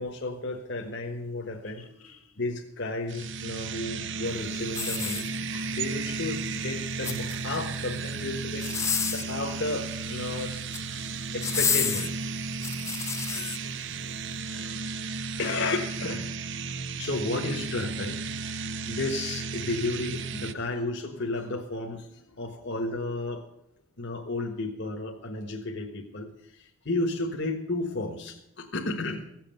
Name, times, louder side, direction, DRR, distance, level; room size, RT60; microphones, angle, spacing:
voice 1, 0.0-1.8 2.4-8.7 9.1-10.7 11.3-12.2 14.3-15.0 15.3-16.3 17.0-18.2 18.9-23.4 24.0-29.2, left 2 dB, 55° left, 1.4 m, -33 dB
voice 2, 1.6-2.4 5.6-5.8 9.4-9.6 10.1-11.1 12.4-12.7 13.3-14.4 16.6-16.8 18.4-19.0 20.5-20.8 22.3-22.4, left 5 dB, 85° left, 2.2 m, -55 dB
sound 1, 3.1-20.5, right 4 dB, 55° right, 0.7 m, -34 dB
sound 2, 4.7-5.7 6.8-7.6 8.5-9.4 10.5-10.9 11.4-13.6 14.2-14.3, left 6 dB, 15° left, 0.4 m, -30 dB
16.0 x 7.6 x 9.0 m
head